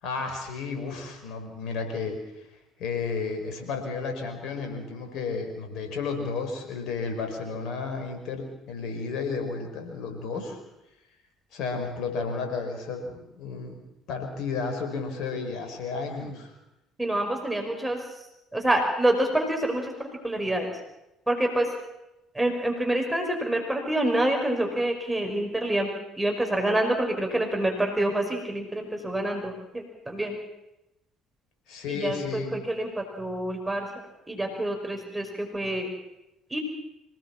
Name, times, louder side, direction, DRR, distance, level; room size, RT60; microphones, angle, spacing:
voice 1, 0.0-2.2 2.8-10.6 11.5-13.8 14.1-16.5 31.7-32.5, left 4 dB, 60° left, 5 dB, 5.4 m, -32 dB
voice 2, 17.0-20.7 21.3-21.7 22.3-25.9 26.2-30.4 31.9-33.9 34.3-35.9 36.5-36.6, right 1 dB, 10° right, 3 dB, 5.3 m, -27 dB
26.0 x 18.0 x 7.4 m, 0.90 s
figure-of-eight pair, 55°, 0 cm